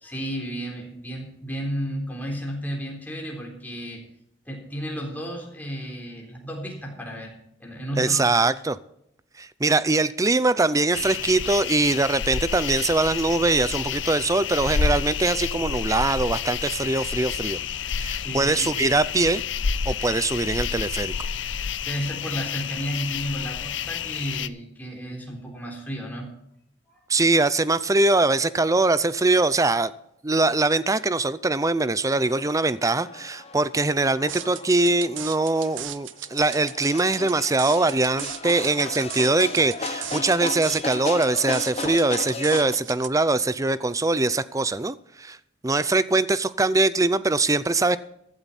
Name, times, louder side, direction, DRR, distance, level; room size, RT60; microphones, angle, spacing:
voice 1, 0.0-4.0 4.5-7.3 7.6-8.3 18.1-18.7 21.8-26.3 26.9-27.0 38.5-38.9, equal, 10° left, 3.8 m, -33 dB
voice 2, 8.0-8.8 9.4-17.6 18.0-19.4 19.9-21.1 27.1-29.9 30.2-45.4 45.6-48.0, right 2 dB, 15° right, 0.5 m, -22 dB
sound 1, 10.9-24.5, left 7 dB, 70° left, 0.6 m, -29 dB
sound 2, 32.1-42.7, left 4 dB, 35° left, 1.0 m, -35 dB
sound 3, 34.3-43.1, right 13 dB, 80° right, 0.7 m, -37 dB
15.5 x 12.0 x 4.2 m
head